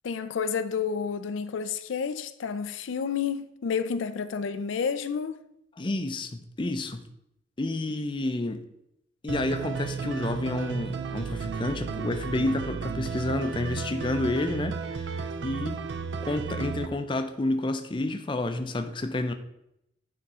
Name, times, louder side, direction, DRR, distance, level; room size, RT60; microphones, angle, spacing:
voice 1, 0.0-5.4, left 6 dB, 85° left, 0.4 m, -30 dB
voice 2, 5.8-7.0 7.6-8.6 9.2-15.9 16.2-19.3, left 2 dB, 25° left, 0.5 m, -30 dB
sound 1, 9.3-16.9, right 5 dB, 60° right, 0.4 m, -33 dB
9.3 x 3.6 x 4.2 m
head